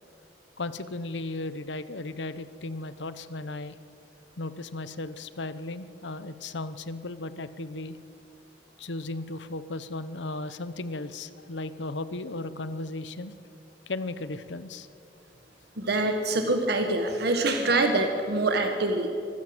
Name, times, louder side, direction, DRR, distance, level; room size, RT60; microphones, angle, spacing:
voice 1, 0.6-3.7 4.4-8.0 8.8-13.3 13.9-14.9, left 2 dB, 90° left, 13 dB, 1.0 m, -35 dB
voice 2, 15.8-19.1, right 2 dB, 65° right, 5 dB, 1.6 m, -25 dB
24.5 x 15.0 x 7.9 m, 2.6 s
head